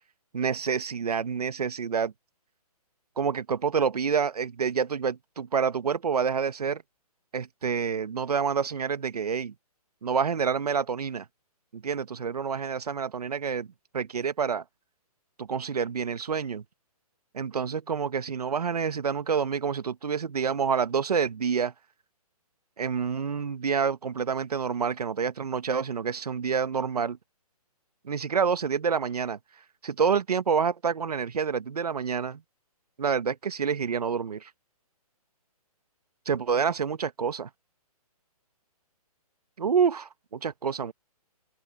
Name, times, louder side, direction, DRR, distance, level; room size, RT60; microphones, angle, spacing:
voice 1, 0.3-2.1 3.2-6.8 7.3-9.5 10.0-11.2 11.7-13.7 13.9-14.6 15.4-16.6 17.3-21.7 22.8-27.2 28.0-29.4 29.8-32.4 33.0-34.5 36.2-37.5 39.6-40.9, right 6 dB, 85° right, 1.6 m, -28 dB
open air
hypercardioid pair, 160°, 20 cm